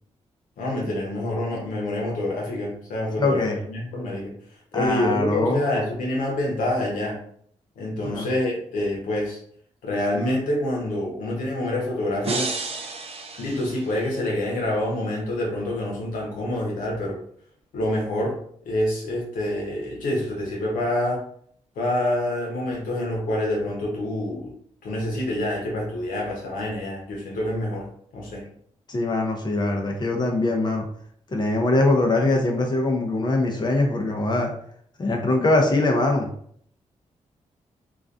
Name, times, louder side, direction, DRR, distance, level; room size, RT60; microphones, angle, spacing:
voice 1, 0.6-4.3 4.7-7.2 7.8-9.4 9.8-12.5 13.4-17.2 17.7-18.4 18.6-21.2 21.8-24.5 24.8-27.9 28.1-28.4, left 1 dB, 85° left, -2 dB, 0.8 m, -26 dB
voice 2, 3.2-3.6 4.7-5.6 8.0-8.3 28.9-30.8 31.3-34.5 35.0-36.3, left 2 dB, 35° left, 2 dB, 0.6 m, -22 dB
sound 1, 12.2-14.4, right 3 dB, 45° right, 0.5 m, -32 dB
2.4 x 2.2 x 2.5 m, 0.62 s
supercardioid pair, 50°, 14 cm